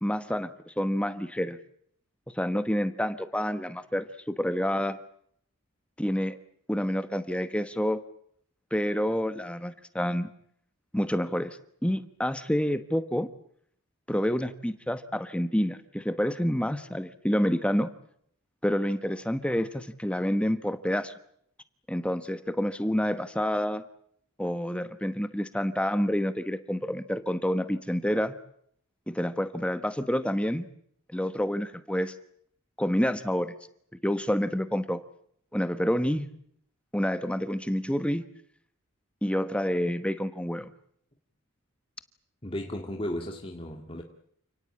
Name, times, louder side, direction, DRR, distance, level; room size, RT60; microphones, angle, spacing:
voice 1, 0.0-1.6 2.3-5.0 6.0-6.4 6.7-8.0 8.7-10.3 10.9-13.3 14.1-17.9 18.6-21.1 21.9-23.8 24.4-28.3 29.1-30.7 31.1-32.1 32.8-33.5 34.0-35.0 35.5-36.3 36.9-38.2 39.2-40.7, equal, 5° left, 1.1 m, -28 dB
voice 2, 42.4-44.0, left 1 dB, 25° left, 2.1 m, -35 dB
29.5 x 18.0 x 8.7 m
head